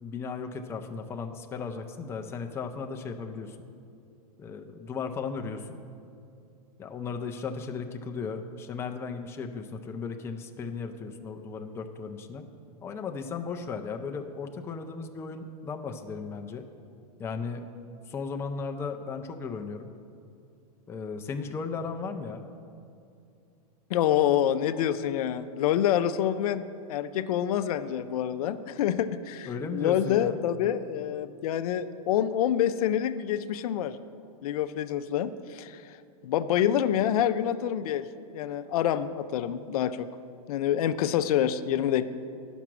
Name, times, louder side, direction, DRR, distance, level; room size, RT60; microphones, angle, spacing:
voice 1, 0.0-3.6 4.4-5.8 6.8-12.5 12.8-16.6 17.2-17.7 18.1-19.9 20.9-22.5 29.5-30.4, left 5 dB, 15° left, 5 dB, 0.4 m, -36 dB
voice 2, 23.9-34.0 34.4-36.0 36.2-38.0 38.3-40.1 40.5-42.1, left 10 dB, 70° left, 11 dB, 0.5 m, -27 dB
10.0 x 6.0 x 6.0 m, 2.5 s
supercardioid pair, 140°, 20 cm